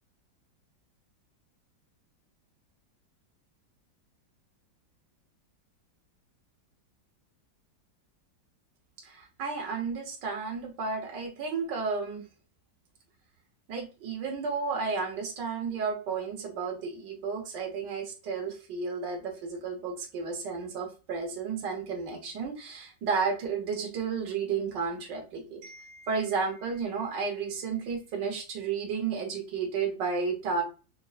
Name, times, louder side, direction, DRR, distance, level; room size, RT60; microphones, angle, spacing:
voice 1, 9.0-12.2 13.7-30.6, right 5 dB, 65° right, 1 dB, 1.8 m, -32 dB
5.3 x 3.0 x 2.4 m, 0.33 s
omnidirectional pair, 2.1 m